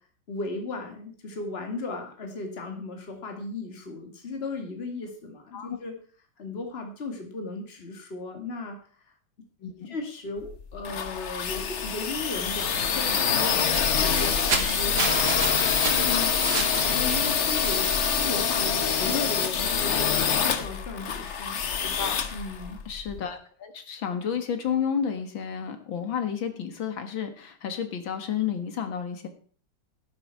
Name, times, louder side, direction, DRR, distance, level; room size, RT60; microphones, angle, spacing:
voice 1, 0.3-5.9 6.4-8.8 9.9-15.5 15.9-16.3 16.8-21.6 22.3-22.8, left 3 dB, 30° left, 3 dB, 2.3 m, -36 dB
voice 2, 9.6-10.0 21.8-22.2 22.9-29.3, left 7 dB, 75° left, 7 dB, 2.4 m, -31 dB
sound 1, 10.4-23.2, left 7 dB, 50° left, 1.0 m, -26 dB
sound 2, 13.3-18.4, right 4 dB, 70° right, 2.6 m, -32 dB
sound 3, 16.0-16.5 17.1-18.9 19.4-19.6 20.0-21.0, right 4 dB, 85° right, 3.3 m, -47 dB
12.0 x 10.5 x 4.6 m, 0.43 s
omnidirectional pair, 2.2 m